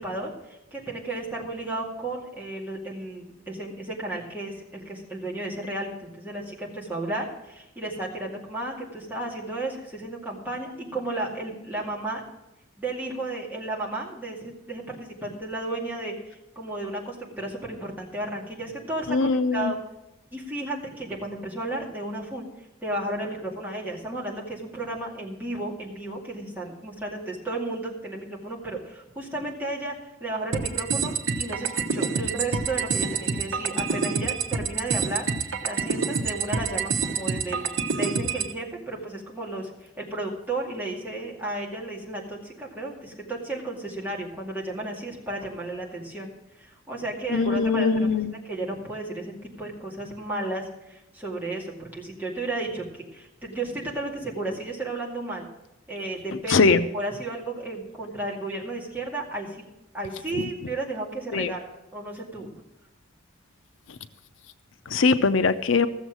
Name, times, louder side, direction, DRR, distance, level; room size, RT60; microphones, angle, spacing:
voice 1, 0.0-12.2 12.8-19.8 20.3-22.5 22.8-35.3 35.6-37.7 37.9-46.3 46.6-48.1 48.4-55.5 55.9-56.6 56.9-59.6 59.9-62.5, right 2 dB, 10° right, -4 dB, 2.2 m, -33 dB
voice 2, 19.1-19.7 47.3-48.4 56.5-56.8 60.4-60.5 61.3-61.5 64.9-65.9, left 4 dB, 80° left, 11 dB, 0.6 m, -21 dB
sound 1, 30.5-38.5, right 5 dB, 80° right, 1.1 m, -27 dB
15.0 x 7.2 x 6.2 m, 0.95 s
head